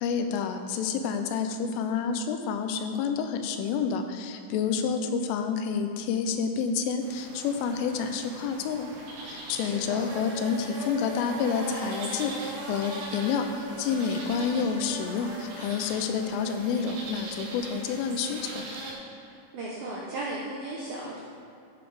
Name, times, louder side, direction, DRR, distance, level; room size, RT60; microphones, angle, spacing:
voice 1, 0.0-8.9 9.2-18.7, left 6 dB, 85° left, 7 dB, 3.3 m, -29 dB
sound 1, 7.0-18.9, right 2 dB, 60° right, 2.6 m, -39 dB
voice 2, 9.6-10.0 19.5-21.2, right 2 dB, 75° right, -5 dB, 2.1 m, -35 dB
12.5 x 7.1 x 4.9 m, 2.6 s
omnidirectional pair, 5.6 m